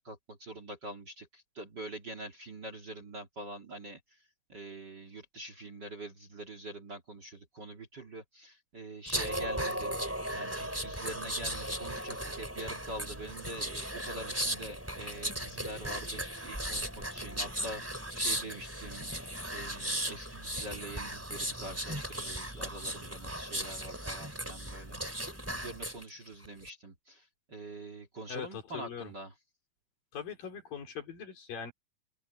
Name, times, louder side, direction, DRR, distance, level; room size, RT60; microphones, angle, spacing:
voice 1, 0.0-4.2 4.5-10.0 10.3-29.3, right 1 dB, 35° right, 2.2 m, -45 dB
sound 1, 9.1-26.0 26.4-26.7, right 1 dB, 5° right, 2.8 m, -37 dB
voice 2, 28.3-29.1 30.1-31.7, left 7 dB, 70° left, 5.4 m, -41 dB
open air
omnidirectional pair, 4.2 m